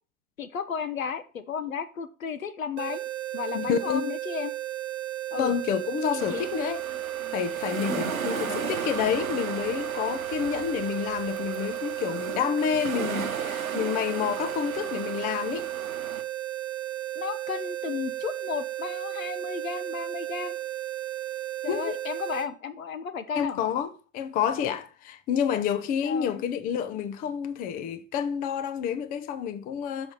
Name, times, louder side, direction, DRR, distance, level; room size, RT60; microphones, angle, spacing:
voice 1, 0.4-3.0 3.3-4.5 5.3-5.5 6.1-6.4 7.9-8.7 17.1-20.6 21.6-23.6 26.0-26.4, left 6 dB, 75° left, 0.9 m, -34 dB
sound 1, 2.8-22.5, right 14 dB, 60° right, 1.2 m, -34 dB
voice 2, 3.5-4.1 5.3-6.8 7.3-15.7 21.7-21.9 23.3-30.1, left 8 dB, 20° left, 0.5 m, -29 dB
sound 2, 6.2-16.2, right 5 dB, 85° right, 0.9 m, -36 dB
6.3 x 5.8 x 4.5 m
figure-of-eight pair, 90°, 41 cm